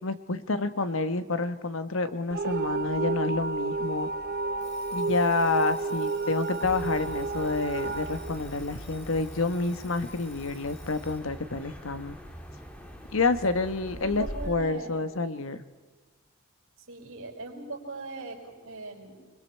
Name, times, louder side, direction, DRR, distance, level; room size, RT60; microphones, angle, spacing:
voice 1, 0.0-4.1 4.9-12.2 13.1-15.6, left 3 dB, 70° left, 11 dB, 1.1 m, -28 dB
sound 1, 2.3-9.2, right 3 dB, 45° right, 0.7 m, -31 dB
Alarm, 4.6-11.3, left 2 dB, 50° left, 6.8 m, -52 dB
sound 2, 6.6-14.5, equal, 5° left, 1.8 m, -43 dB
voice 2, 13.5-15.1 16.9-19.1, right 2 dB, 70° right, 0 dB, 5.9 m, -40 dB
30.0 x 21.5 x 4.5 m, 1.5 s
head